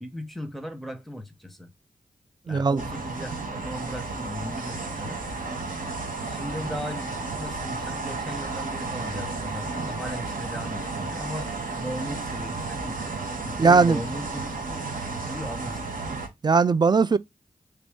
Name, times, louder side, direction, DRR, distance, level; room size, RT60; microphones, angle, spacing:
voice 1, 0.0-1.7 2.5-5.2 6.2-11.5 11.7-13.0 13.4-16.0, equal, ahead, 0.9 m, -37 dB
voice 2, 2.5-2.8 13.6-14.0 16.4-17.2, right 4 dB, 30° right, 0.3 m, -19 dB
sound 1, 2.8-16.3, right 3 dB, 70° right, 1.0 m, -33 dB
3.4 x 2.6 x 3.5 m
cardioid pair, 45°, 15 cm